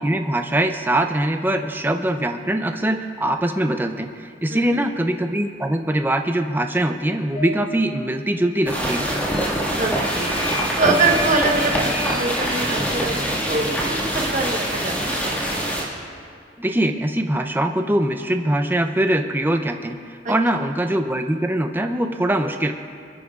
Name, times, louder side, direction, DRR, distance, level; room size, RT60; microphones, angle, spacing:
voice 1, 0.0-9.1 16.6-22.7, right 1 dB, 10° right, 6 dB, 0.5 m, -22 dB
sound 1, 7.3-7.5 9.3-9.7 10.0-12.5, left 1 dB, 50° left, 2.5 m, -33 dB
sound 2, 8.7-15.8, right 1 dB, 10° left, 1.9 m, -24 dB
voice 2, 9.8-10.3 10.8-15.4 20.2-20.3, right 3 dB, 45° right, 1 dB, 1.2 m, -24 dB
28.0 x 10.0 x 2.4 m, 2.3 s
head